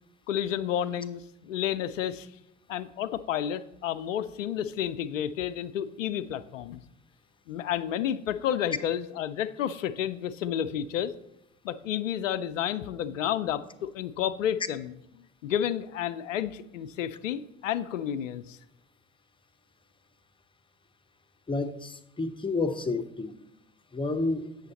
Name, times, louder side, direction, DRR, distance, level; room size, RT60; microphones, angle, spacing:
voice 1, 0.3-2.3 2.7-6.8 7.5-11.1 11.6-14.9 15.4-18.6, left 10 dB, 85° left, 13 dB, 0.5 m, -31 dB
voice 2, 21.5-23.3 23.9-24.5, left 3 dB, 15° left, 10 dB, 0.6 m, -30 dB
8.1 x 6.4 x 4.1 m, 0.83 s
hypercardioid pair, 60°, 37 cm